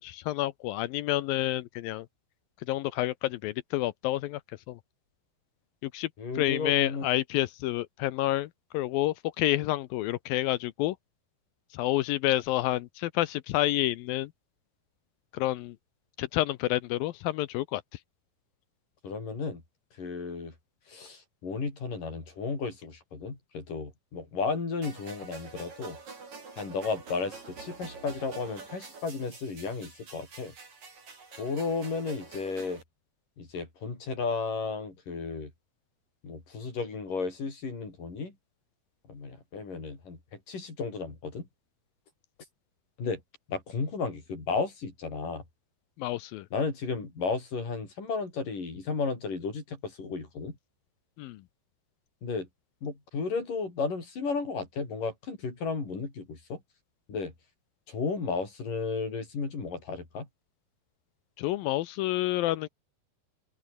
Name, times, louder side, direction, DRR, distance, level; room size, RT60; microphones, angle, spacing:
voice 1, 0.0-2.1 2.7-4.4 4.7-4.8 5.8-6.1 6.4-8.5 8.7-11.0 11.7-14.3 15.3-15.8 16.2-17.8 46.0-46.5 51.2-51.4 61.4-62.7, left 15 dB, 75° left, 2.3 m, -29 dB
voice 2, 6.2-7.0 19.0-19.6 20.0-20.5 20.9-26.0 26.6-30.5 31.4-32.8 33.4-35.5 36.2-38.4 39.1-41.5 43.0-43.2 43.5-45.4 46.5-50.6 52.2-52.5 52.8-56.6 57.1-57.3 57.9-60.3, left 4 dB, 55° left, 7.9 m, -33 dB
sound 1, 24.8-32.8, right 4 dB, 45° right, 6.6 m, -46 dB
open air
omnidirectional pair, 4.7 m